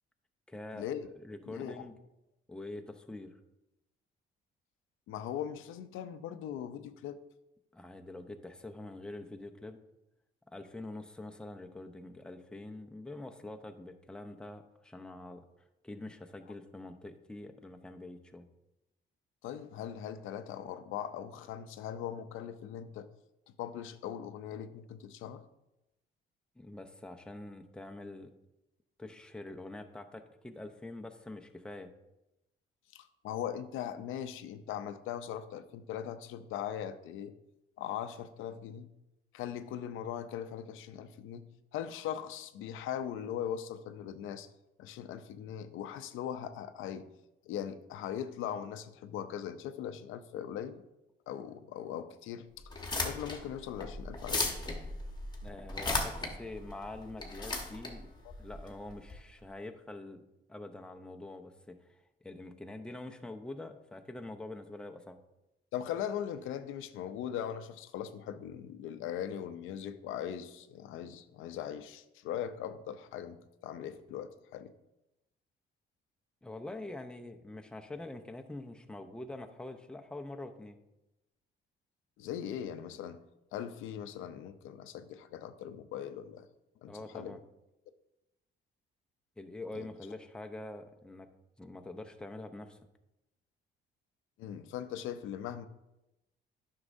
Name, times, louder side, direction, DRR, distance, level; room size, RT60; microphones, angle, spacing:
voice 1, 0.5-0.9 1.1-2.0 2.5-3.4 7.7-9.8 10.5-18.5 26.6-28.3 29.0-31.9 55.4-58.1 58.4-60.2 60.5-65.2 76.4-80.8 86.9-87.4 89.4-91.3 91.6-92.8, left 2 dB, 5° left, 5 dB, 0.6 m, -45 dB
voice 2, 1.5-1.8 5.1-7.2 19.4-23.1 23.6-25.4 32.9-37.3 37.8-38.9 39.3-44.5 44.8-47.1 47.5-50.8 51.3-52.5 53.0-54.5 65.7-74.7 82.2-83.2 83.5-86.5 86.8-87.4 89.8-89.9 94.4-95.7, left 9 dB, 90° left, 11 dB, 0.5 m, -40 dB
sound 1, 52.6-59.1, left 2 dB, 20° left, 1.2 m, -36 dB
9.6 x 6.3 x 2.6 m, 0.93 s
cardioid pair, 90°, 20 cm